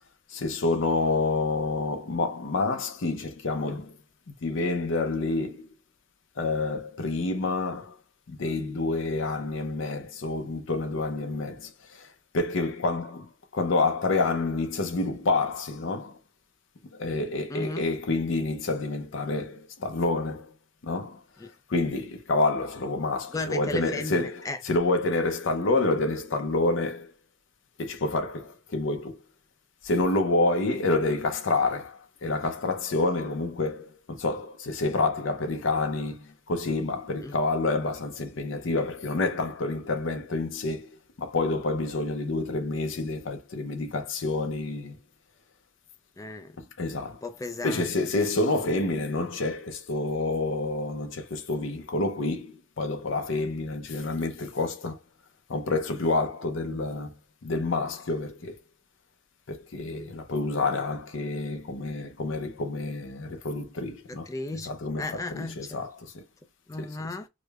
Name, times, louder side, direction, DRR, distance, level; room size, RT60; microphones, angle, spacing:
voice 1, 0.3-3.9 4.3-5.7 6.4-8.0 8.3-16.2 17.0-20.5 20.8-21.2 21.7-27.1 27.8-29.2 29.8-45.0 46.6-47.2 47.6-55.0 55.5-57.1 57.4-58.6 59.5-66.2 66.8-67.0, left 3 dB, 65° left, 0.6 m, -28 dB
voice 2, 17.5-17.9 21.4-21.5 23.3-24.6 37.2-37.3 46.2-46.6 47.2-48.3 64.3-64.7 65.0-65.8 66.7-67.3, left 2 dB, 15° left, 0.3 m, -35 dB
4.9 x 2.0 x 2.3 m
head